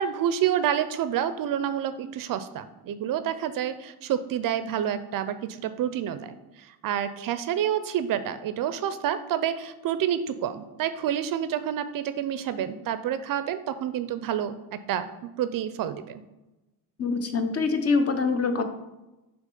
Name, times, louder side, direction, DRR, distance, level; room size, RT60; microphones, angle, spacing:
voice 1, 0.0-16.2, right 10 dB, 55° right, 12 dB, 0.5 m, -28 dB
voice 2, 17.0-18.6, left 4 dB, 35° left, 7 dB, 0.7 m, -24 dB
6.3 x 3.0 x 5.3 m, 1.0 s
cardioid pair, 120°, 41 cm